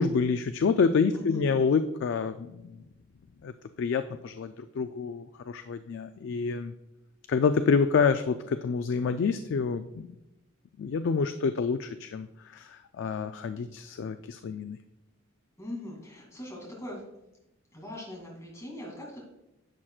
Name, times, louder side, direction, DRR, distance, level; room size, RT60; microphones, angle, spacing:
voice 1, 0.0-2.8 3.4-3.5 3.8-6.7 7.3-10.1 10.8-14.8, left 5 dB, 60° left, 9 dB, 0.3 m, -27 dB
voice 2, 1.1-1.6 15.6-17.0 17.7-19.2, left 1 dB, 15° left, -3 dB, 2.5 m, -41 dB
10.5 x 7.4 x 2.4 m, 0.91 s
head